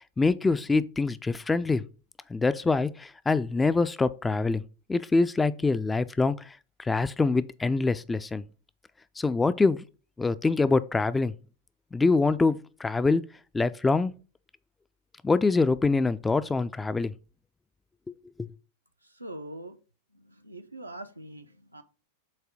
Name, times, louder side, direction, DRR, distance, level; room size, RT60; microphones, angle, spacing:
voice 1, 0.0-1.8 2.3-4.6 4.9-6.5 6.8-8.4 9.2-9.8 10.2-11.3 11.9-13.2 13.5-14.1 15.2-17.1 18.1-18.2 18.4-18.5, left 3 dB, 10° left, 0.3 m, -25 dB
voice 2, 19.0-19.8 20.1-21.8, right 1 dB, 85° right, 0.6 m, -43 dB
7.4 x 2.7 x 4.9 m
figure-of-eight pair, 90°, 0 cm